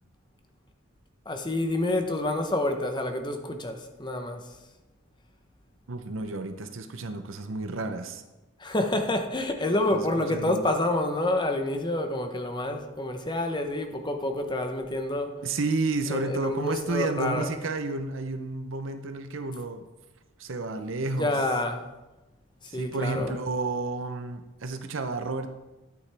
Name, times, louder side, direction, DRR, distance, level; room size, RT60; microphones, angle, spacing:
voice 1, 1.3-4.4 8.6-15.4 16.1-17.5 21.1-21.8 22.6-23.4, left 1 dB, 20° left, 0.8 m, -28 dB
voice 2, 5.9-8.2 9.9-10.0 10.3-10.6 15.4-19.8 20.4-21.3 22.7-25.5, right 3 dB, 60° right, 0.7 m, -31 dB
11.0 x 8.4 x 3.4 m
head